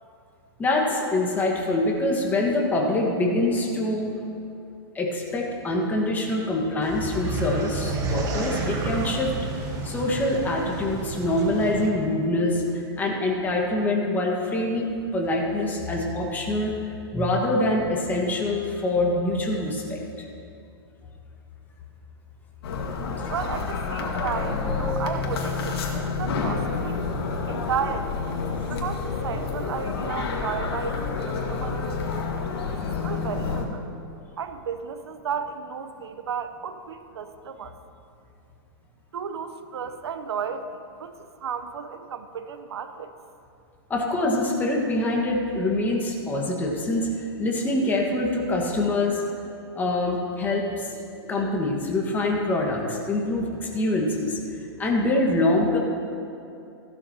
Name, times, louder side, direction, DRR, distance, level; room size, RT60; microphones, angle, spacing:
voice 1, 0.6-4.2 4.9-9.3 9.8-16.7 17.1-20.2 43.9-49.2 49.7-55.8, left 2 dB, 15° left, -1 dB, 1.6 m, -25 dB
sound 1, 6.8-11.9, right 3 dB, 25° right, 1.4 m, -30 dB
sound 2, 22.6-33.6, left 4 dB, 70° left, 1.8 m, -29 dB
voice 2, 23.3-27.0 27.5-28.1 28.7-32.1 32.7-33.9 34.4-37.8 39.1-43.1, right 6 dB, 90° right, 9 dB, 0.9 m, -33 dB
15.5 x 12.0 x 2.9 m, 2.7 s
hypercardioid pair, 145°, 13 cm